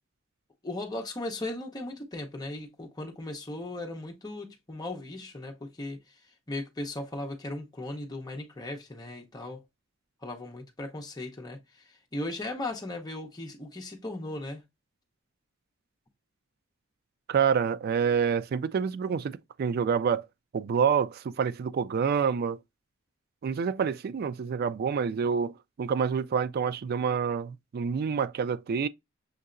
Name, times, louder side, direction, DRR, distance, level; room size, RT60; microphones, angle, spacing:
voice 1, 0.6-6.0 6.5-9.6 10.2-11.6 12.1-14.6, left 2 dB, 20° left, 0.8 m, -37 dB
voice 2, 17.3-20.3 20.5-22.6 23.4-28.9, right 6 dB, 50° right, 0.3 m, -27 dB
6.5 x 2.7 x 2.5 m
head